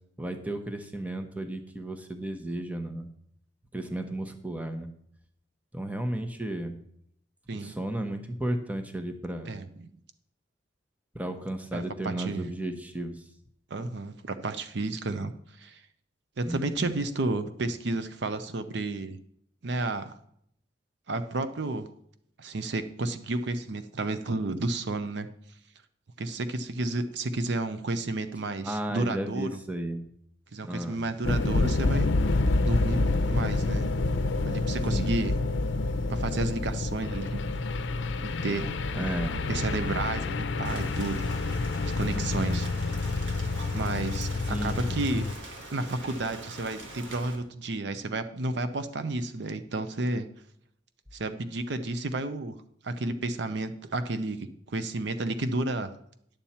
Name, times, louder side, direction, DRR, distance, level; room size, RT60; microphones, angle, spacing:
voice 1, 0.2-3.1 3.7-4.9 5.7-6.8 7.5-9.5 11.1-13.2 16.4-16.9 28.6-30.0 30.6-31.0 34.9-35.1 38.9-39.5 42.1-42.6 44.5-45.1, right 1 dB, 10° right, 7 dB, 0.8 m, -34 dB
voice 2, 9.5-9.9 11.7-12.4 13.7-15.3 15.6-15.8 16.4-19.2 19.6-20.1 21.1-21.9 22.4-25.3 26.2-29.5 30.5-32.1 32.6-33.9 34.5-35.3 36.1-37.4 38.4-38.7 39.5-41.2 41.8-42.7 43.7-44.3 44.6-45.2 45.7-50.3 51.1-52.6 52.8-55.9, right 2 dB, 65° right, 10 dB, 0.6 m, -31 dB
sound 1, 31.2-45.3, left 3 dB, 70° left, 0.6 m, -28 dB
Rain, 40.6-47.4, right 1 dB, 85° right, 1.8 m, -43 dB
10.5 x 7.2 x 4.3 m, 0.70 s
head